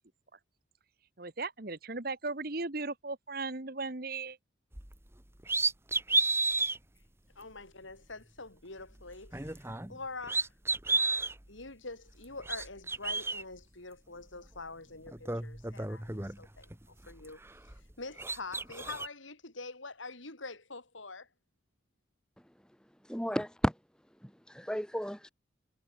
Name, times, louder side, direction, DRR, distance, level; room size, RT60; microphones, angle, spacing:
voice 1, 1.2-4.4, right 3 dB, 50° right, 1.5 m, -37 dB
sound 1, 4.7-4.9 5.4-6.8 7.4-7.5 9.2-10.0 10.2-11.3 12.2-13.4 14.6-14.7 15.1-16.7 17.1-17.9 18.2-19.1, right 3 dB, 15° right, 1.5 m, -32 dB
voice 2, 7.4-9.6 9.9-10.5 10.9-16.7 17.1-17.4 18.0-21.3, left 3 dB, 80° left, 4.8 m, -45 dB
voice 3, 23.0-23.8 24.2-25.3, equal, 5° left, 2.0 m, -33 dB
head